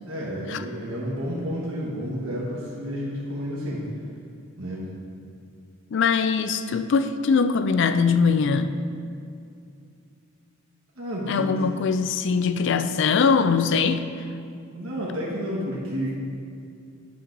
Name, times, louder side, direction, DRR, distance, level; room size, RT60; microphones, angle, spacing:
voice 1, 0.1-3.8 4.6-4.8 11.0-11.6 14.7-16.3, equal, 65° right, -6 dB, 1.3 m, -30 dB
voice 2, 5.9-8.8 11.3-14.0, left 5 dB, 55° left, 11 dB, 0.3 m, -22 dB
9.3 x 6.1 x 3.8 m, 2.5 s
head